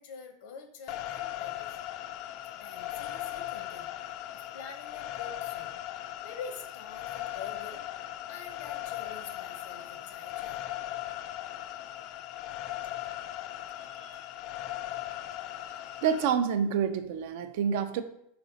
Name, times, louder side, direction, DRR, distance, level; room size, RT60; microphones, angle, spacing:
voice 1, 0.0-1.9 2.5-5.8 6.2-10.6, left 5 dB, 70° left, 6 dB, 0.7 m, -46 dB
sound 1, 0.9-16.3, left 13 dB, 50° left, 0.3 m, -38 dB
voice 2, 15.7-18.0, right 7 dB, 70° right, 10 dB, 0.4 m, -28 dB
4.1 x 4.0 x 2.7 m, 0.75 s
supercardioid pair, 130°, 0 cm